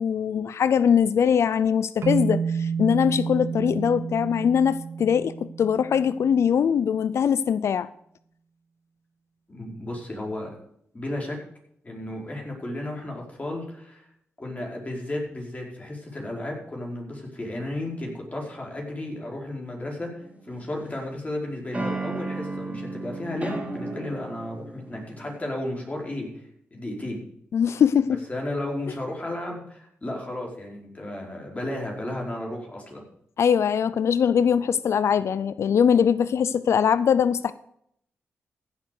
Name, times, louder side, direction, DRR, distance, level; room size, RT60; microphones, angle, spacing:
voice 1, 0.0-7.9 27.5-28.2 33.4-37.5, left 7 dB, 70° left, 0.5 m, -22 dB
sound 1, 2.0-6.3, right 6 dB, 70° right, 1.0 m, -30 dB
voice 2, 9.5-10.5 10.9-11.4 11.8-14.0 14.4-26.4 26.7-27.2 28.3-33.0, left 1 dB, 30° left, 4.7 m, -33 dB
sound 2, 20.2-21.1 21.7-25.4, right 2 dB, 25° right, 3.7 m, -34 dB
15.0 x 7.1 x 6.6 m
cardioid pair, 60°, 5 cm